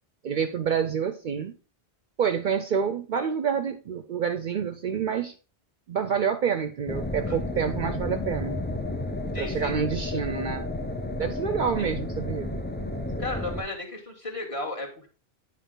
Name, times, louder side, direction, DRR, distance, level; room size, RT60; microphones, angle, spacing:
voice 1, 0.2-1.5 2.2-5.3 5.9-8.6 9.4-10.6 11.2-12.6 13.2-13.3, right 7 dB, 60° right, 9 dB, 0.6 m, -28 dB
sound 1, 6.9-13.6, left 1 dB, 15° left, 0.5 m, -32 dB
voice 2, 9.3-9.7 11.8-11.9 13.2-15.1, left 2 dB, 30° left, 0 dB, 1.6 m, -34 dB
9.3 x 4.5 x 3.8 m, 0.36 s
omnidirectional pair, 1.1 m